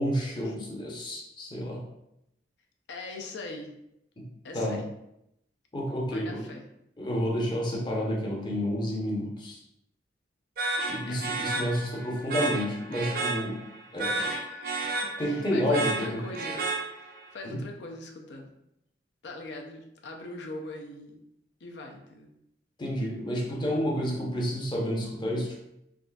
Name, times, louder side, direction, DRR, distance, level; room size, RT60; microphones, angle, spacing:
voice 1, 0.0-1.8 4.2-4.3 4.5-4.8 5.7-6.4 7.0-9.6 10.9-13.6 13.9-14.3 15.2-16.1 17.4-17.6 22.8-25.6, equal, 25° left, -3 dB, 0.6 m, -30 dB
voice 2, 2.9-3.7 4.4-4.9 6.1-6.6 11.1-11.3 14.1-14.8 15.2-16.6 17.0-18.5 19.2-21.2 21.6-22.3, left 2 dB, 75° left, 2 dB, 0.5 m, -41 dB
sound 1, 10.6-17.3, right 3 dB, 55° right, 0.4 m, -32 dB
3.6 x 2.5 x 2.3 m, 0.83 s
head